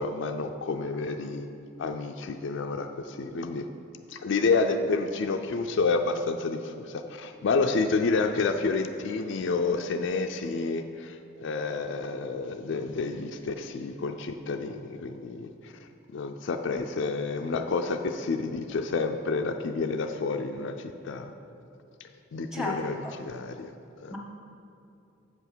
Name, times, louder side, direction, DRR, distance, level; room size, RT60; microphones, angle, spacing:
voice 1, 0.0-1.5 1.8-3.6 4.1-15.7 16.1-21.3 22.0-23.7 24.0-24.2, left 4 dB, 60° left, 6 dB, 0.4 m, -29 dB
voice 2, 22.5-23.1 24.1-24.2, left 2 dB, 5° right, -1 dB, 1.0 m, -34 dB
7.7 x 5.7 x 6.1 m, 2.7 s
head